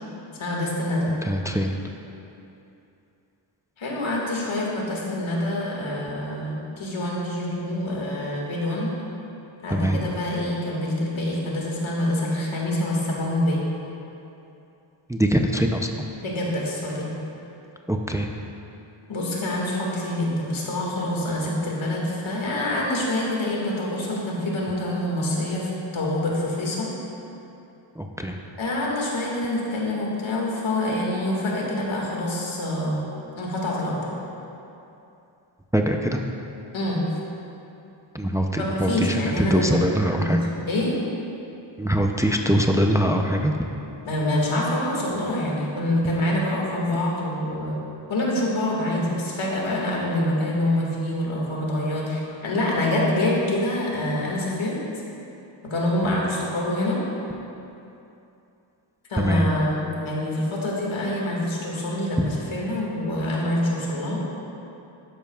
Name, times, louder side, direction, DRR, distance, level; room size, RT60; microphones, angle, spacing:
voice 1, 0.4-1.1 3.8-8.9 9.6-13.6 16.2-17.1 19.1-26.9 28.6-33.1 33.4-34.1 36.7-37.0 38.6-40.4 40.7-40.9 44.1-47.8 48.1-54.8 55.6-57.0 59.1-64.2, left 1 dB, 90° left, -3 dB, 2.0 m, -26 dB
voice 2, 1.2-1.7 9.7-10.0 15.1-16.1 17.9-18.3 28.0-28.4 35.7-36.2 38.1-40.4 41.8-43.7 56.0-56.2 59.2-59.5, equal, 5° right, 3 dB, 0.5 m, -23 dB
12.0 x 10.5 x 2.3 m, 2.8 s
wide cardioid pair, 95°, 46 cm